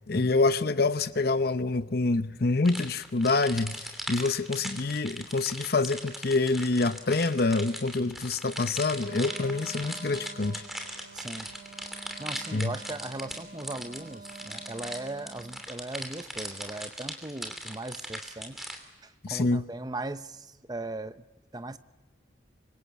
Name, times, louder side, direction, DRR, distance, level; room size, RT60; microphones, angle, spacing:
voice 1, 0.1-10.6 12.5-12.7 19.2-19.6, left 3 dB, 50° left, 0.8 m, -26 dB
sound 1, 2.6-18.8, equal, ahead, 2.8 m, -39 dB
Wind instrument woodwind instrument, 9.0-15.6, right 3 dB, 45° right, 4.1 m, -48 dB
voice 2, 11.1-11.5 12.2-18.7 19.0-21.3 21.5-21.8, right 2 dB, 20° right, 0.8 m, -38 dB
25.5 x 23.5 x 8.3 m
head